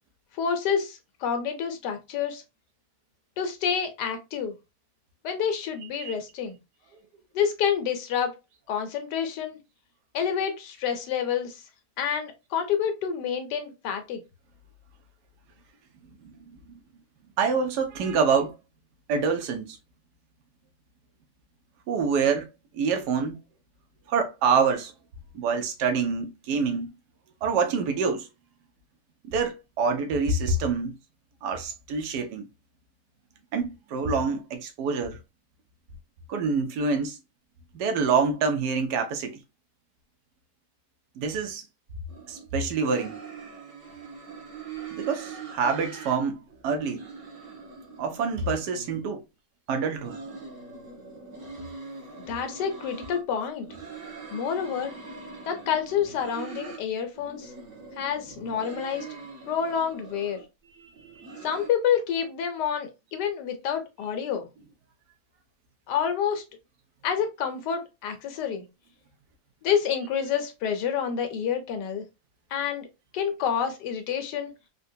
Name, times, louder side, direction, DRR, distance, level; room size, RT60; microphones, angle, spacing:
voice 1, 0.3-2.4 3.4-4.5 5.2-6.6 7.3-8.4 8.7-9.6 10.1-11.6 12.0-14.2 52.3-53.7 54.3-54.9 55.4-57.5 58.0-59.1 59.5-60.4 61.4-64.5 65.9-66.4 67.0-68.6 69.6-72.0 72.5-72.9 73.1-74.5, left 8 dB, 85° left, 1.3 m, -28 dB
voice 2, 17.4-18.5 19.1-19.8 21.9-22.5 22.7-23.4 24.1-24.9 25.3-26.9 27.4-28.3 29.2-31.0 31.4-32.5 33.5-35.2 36.3-37.2 37.7-39.4 41.2-41.6 42.3-43.2 44.9-47.0 48.0-49.2 49.7-50.2 61.0-61.4, right 5 dB, 80° right, 1.2 m, -26 dB
sound 1, 42.1-42.5 42.8-46.2 46.5-49.0 49.8-53.2 53.6-56.8 57.1-60.4 60.9-61.7, right 4 dB, 45° right, 1.5 m, -42 dB
3.8 x 2.2 x 2.6 m
omnidirectional pair, 1.8 m